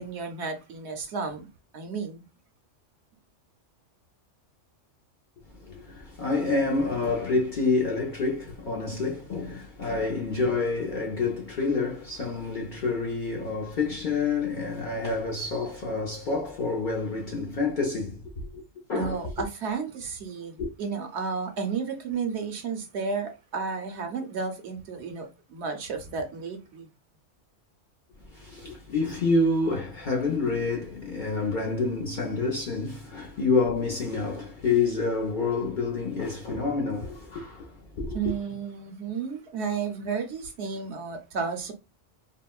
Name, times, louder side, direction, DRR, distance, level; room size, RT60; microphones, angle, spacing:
voice 1, 0.0-1.5 1.7-2.2 18.9-26.9 38.1-41.7, right 5 dB, 65° right, 0.8 m, -32 dB
voice 2, 5.5-18.6 18.9-19.2 20.6-20.7 28.2-38.2, left 3 dB, 55° left, 0.6 m, -28 dB
3.5 x 2.1 x 2.2 m
omnidirectional pair, 1.3 m